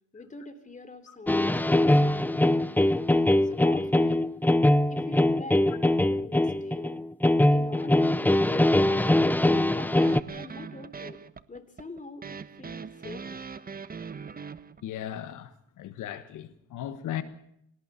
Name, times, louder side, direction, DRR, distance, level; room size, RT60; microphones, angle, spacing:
voice 1, 0.1-2.9 3.4-4.4 4.8-7.0 7.5-11.2 11.5-13.4, left 3 dB, 25° left, 3.4 m, -44 dB
sound 1, 1.3-10.2, left 1 dB, 5° left, 0.7 m, -22 dB
sound 2, 10.0-14.8, right 5 dB, 30° right, 1.1 m, -41 dB
voice 2, 14.8-17.2, left 11 dB, 85° left, 1.4 m, -37 dB
23.0 x 18.0 x 6.9 m
cardioid pair, 90°, 30 cm